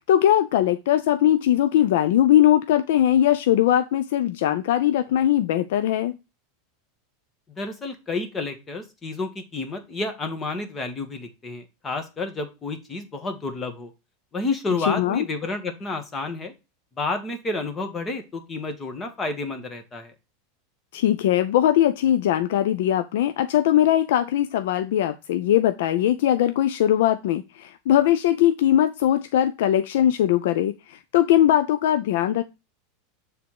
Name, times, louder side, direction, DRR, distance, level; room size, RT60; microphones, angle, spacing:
voice 1, 0.0-6.2 14.8-15.3 20.9-32.4, left 11 dB, 75° left, 9 dB, 0.5 m, -20 dB
voice 2, 7.6-13.9 14.3-16.5 17.0-20.1, left 3 dB, 20° left, 6 dB, 1.6 m, -30 dB
7.0 x 3.5 x 4.7 m, 0.26 s
supercardioid pair, 125°, 0 cm